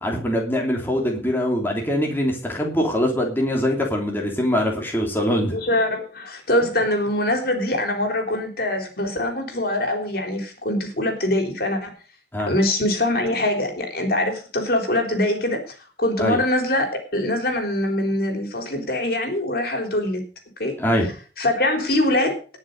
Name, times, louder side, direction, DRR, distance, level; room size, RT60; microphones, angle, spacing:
voice 1, 0.0-5.5 6.6-6.7 12.3-12.5 16.2-16.4 20.8-21.1, equal, 10° left, 0 dB, 3.0 m, -23 dB
voice 2, 5.5-11.9 12.5-15.6 16.0-20.2 20.6-20.8 21.4-22.4, left 1 dB, 55° left, 4 dB, 3.7 m, -23 dB
19.5 x 6.6 x 5.3 m, 0.37 s
head